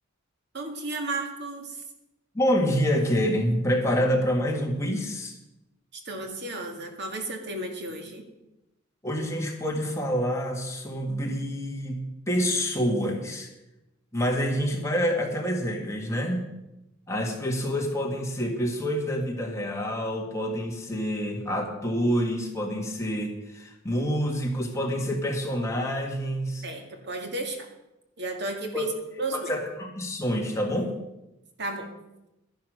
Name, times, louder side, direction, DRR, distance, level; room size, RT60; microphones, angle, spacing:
voice 1, 0.5-1.8 5.9-8.2 26.6-27.7 28.2-28.9 29.2-29.5 31.6-31.9, right 2 dB, 55° right, 4 dB, 2.0 m, -33 dB
voice 2, 2.3-5.4 9.0-13.5 14.1-16.5 17.1-26.6 28.7-28.9 29.3-30.9, equal, 15° left, 0 dB, 2.0 m, -27 dB
12.5 x 10.5 x 6.5 m, 0.93 s
head